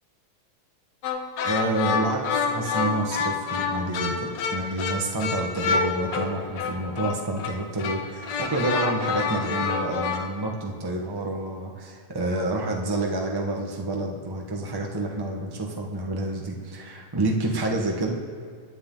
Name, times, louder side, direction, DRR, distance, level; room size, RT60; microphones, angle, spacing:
sound 1, 1.0-10.2, left 5 dB, 70° left, 2.1 m, -28 dB
voice 1, 1.4-18.1, right 2 dB, 35° right, 0 dB, 0.3 m, -28 dB
27.0 x 9.5 x 4.0 m, 2.1 s
omnidirectional pair, 3.3 m